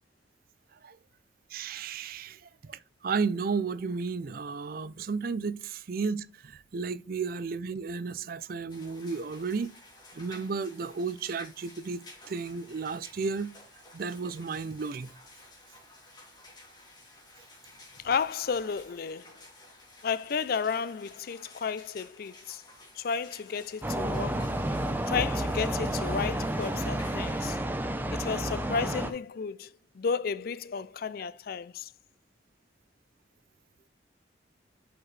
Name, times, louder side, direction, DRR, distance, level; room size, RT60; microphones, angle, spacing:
voice 1, 1.5-9.7 10.1-12.0 12.3-13.5 13.9-15.1, right 5 dB, 55° right, 0.4 m, -33 dB
sound 1, 8.7-27.6, left 2 dB, 25° left, 2.7 m, -53 dB
voice 2, 18.0-19.4 20.0-22.6 22.9-24.6 25.1-27.6 28.1-31.9, left 6 dB, 55° left, 0.4 m, -32 dB
sound 2, 23.8-29.1, right 1 dB, 10° right, 0.7 m, -30 dB
7.9 x 5.9 x 3.2 m
head